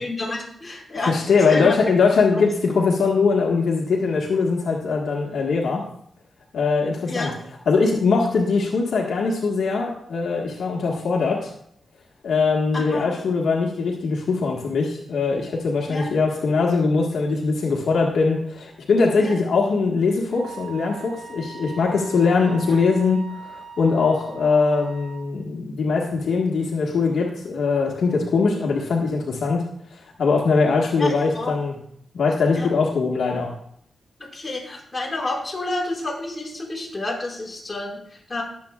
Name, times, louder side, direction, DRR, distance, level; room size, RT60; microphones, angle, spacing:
voice 1, 0.0-1.7 2.3-2.4 7.0-7.4 12.7-13.1 15.9-16.1 19.2-19.4 22.7-22.8 31.0-31.5 32.5-32.7 34.3-38.4, left 2 dB, 25° left, -3 dB, 5.0 m, -29 dB
voice 2, 1.0-5.8 6.5-7.3 7.7-11.5 12.2-29.6 30.2-31.7 32.1-33.5, left 4 dB, 85° left, -1 dB, 1.6 m, -21 dB
Wind instrument woodwind instrument, 20.3-25.2, right 6 dB, 55° right, 5.0 m, -40 dB
20.5 x 7.8 x 2.4 m, 0.68 s
cardioid pair, 70°, 0 cm